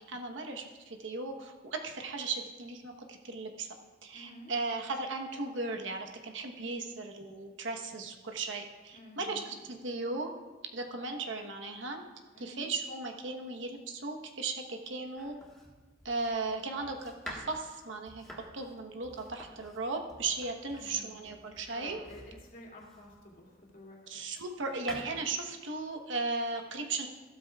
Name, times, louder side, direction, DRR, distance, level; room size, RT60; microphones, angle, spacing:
voice 1, 0.0-3.7 4.0-10.3 10.7-12.0 12.4-15.4 16.0-18.2 18.5-22.0 24.1-27.1, right 3 dB, 70° right, 3 dB, 1.1 m, -36 dB
voice 2, 4.1-4.5 8.9-9.6 12.3-12.7 20.7-24.2, left 1 dB, 45° left, -2 dB, 2.6 m, -51 dB
Domestic sounds home sounds, 15.2-23.3 23.9-25.0, equal, 5° left, 1.5 m, -50 dB
15.0 x 12.5 x 2.4 m, 1.3 s
head